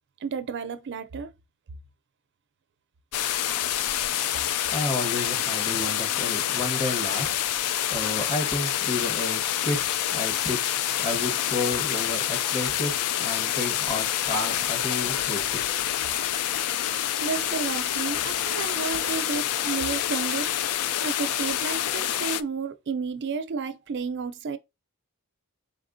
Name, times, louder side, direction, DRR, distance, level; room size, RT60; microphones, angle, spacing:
voice 1, 0.2-1.3 17.2-20.5 21.0-24.6, right 5 dB, 55° right, 0.4 m, -32 dB
sound 1, 3.1-22.4, left 11 dB, 85° left, 0.4 m, -27 dB
voice 2, 4.6-7.4 7.9-9.8 10.1-10.6 11.0-15.7, left 2 dB, 30° left, 1.2 m, -31 dB
4.2 x 3.8 x 2.6 m
head